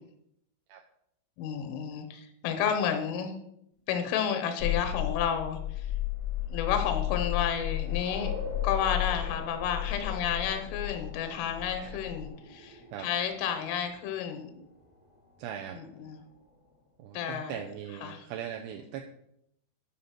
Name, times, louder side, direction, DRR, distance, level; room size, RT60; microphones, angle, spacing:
voice 1, 1.4-3.4 3.9-5.9 6.5-8.3 8.6-14.6 15.7-16.2 17.1-17.6 18.0-18.3, left 8 dB, 85° left, 6 dB, 3.6 m, -31 dB
sound 1, 4.6-12.3, left 13 dB, 70° left, 1.7 m, -33 dB
sound 2, 5.6-16.9, left 1 dB, 45° left, 0.4 m, -48 dB
voice 2, 15.4-15.8 17.0-19.1, right 9 dB, 80° right, 3 dB, 2.5 m, -39 dB
12.0 x 5.6 x 5.9 m, 0.76 s
omnidirectional pair, 5.6 m